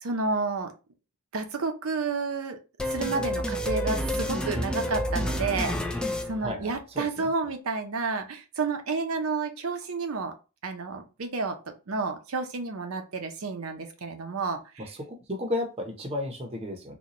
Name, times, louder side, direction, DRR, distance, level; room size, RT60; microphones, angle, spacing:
voice 1, 0.0-0.7 1.3-2.6 2.9-10.3 10.6-14.9, right 4 dB, 75° right, 0.7 m, -31 dB
sound 1, 2.8-7.1, equal, 5° left, 0.3 m, -30 dB
voice 2, 6.4-7.3 15.1-17.0, left 1 dB, 25° right, 0.7 m, -33 dB
4.1 x 2.3 x 2.9 m
head